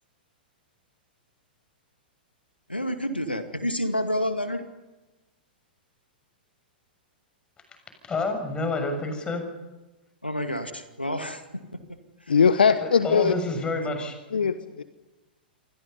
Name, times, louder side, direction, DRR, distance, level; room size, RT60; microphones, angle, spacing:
voice 1, 2.7-4.6 10.2-11.4 12.3-12.4, equal, 90° left, 8 dB, 2.2 m, -29 dB
voice 2, 8.1-9.4 12.8-14.1, left 3 dB, 15° left, 6 dB, 6.8 m, -29 dB
voice 3, 12.3-13.3 14.3-14.8, left 6 dB, 70° left, 12 dB, 1.2 m, -20 dB
28.5 x 24.5 x 5.5 m, 1.1 s
figure-of-eight pair, 105°, 5 cm